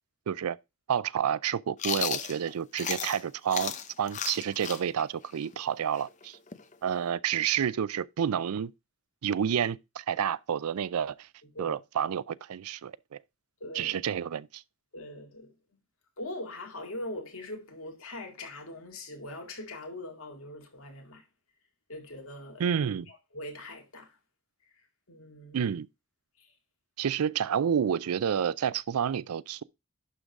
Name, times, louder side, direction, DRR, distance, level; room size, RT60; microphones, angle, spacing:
voice 1, 0.3-0.6 0.9-3.7 4.0-6.4 6.8-8.7 9.2-11.3 11.6-13.2 13.7-14.6 22.6-23.1 25.5-25.9 27.0-29.6, right 8 dB, 90° right, 0.4 m, -29 dB
Chewing mastication, 1.8-3.2 3.5-7.1, left 8 dB, 35° left, 0.7 m, -34 dB
voice 2, 11.4-11.8 13.6-14.0 14.9-15.5 16.2-21.2 21.9-22.7 23.1-24.2 25.1-25.7 26.4-26.5, left 1 dB, 75° left, 2.1 m, -42 dB
11.5 x 3.9 x 4.6 m
head